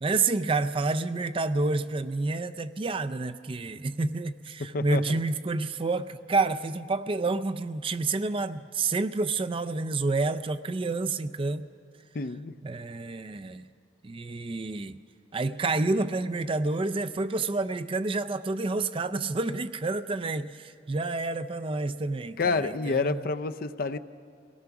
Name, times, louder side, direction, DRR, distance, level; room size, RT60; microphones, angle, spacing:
voice 1, 0.0-11.7 12.6-13.6 14.0-15.0 15.3-23.3, right 3 dB, 30° right, 11 dB, 0.4 m, -29 dB
voice 2, 4.7-5.2 12.1-12.5 22.4-24.0, left 4 dB, 50° left, 10 dB, 0.5 m, -28 dB
25.5 x 18.0 x 5.9 m, 2.3 s
head